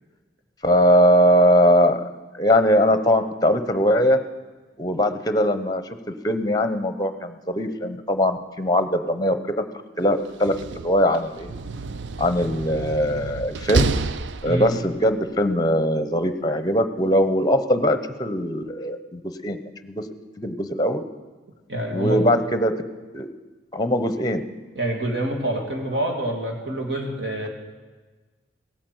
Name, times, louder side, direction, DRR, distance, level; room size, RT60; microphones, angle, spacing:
voice 1, 0.6-2.0 2.3-4.2 4.8-5.8 6.2-9.6 10.0-10.5 10.8-11.5 12.2-13.9 14.4-20.0 20.4-21.0 21.9-22.7 23.1-23.3 23.7-24.4, equal, 20° left, 10 dB, 0.9 m, -21 dB
Slam, 10.3-15.0, right 4 dB, 90° right, 0.5 m, -29 dB
voice 2, 21.7-22.3 24.7-27.5, right 1 dB, 75° right, 1 dB, 2.4 m, -26 dB
17.0 x 8.7 x 7.9 m, 1.3 s
head